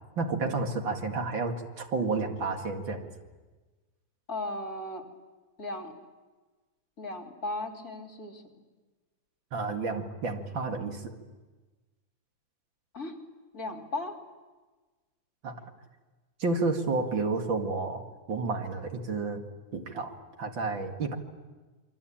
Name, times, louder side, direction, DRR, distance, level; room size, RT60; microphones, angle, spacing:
voice 1, 0.2-3.1 9.5-11.2 15.4-15.6 16.4-19.4 19.7-21.2, right 3 dB, 85° right, 4 dB, 3.0 m, -31 dB
voice 2, 4.3-5.0 5.6-5.9 7.0-8.4 12.9-13.2 13.5-14.2, left 2 dB, 50° left, 3 dB, 3.7 m, -36 dB
27.5 x 24.0 x 8.8 m, 1.3 s
omnidirectional pair, 2.0 m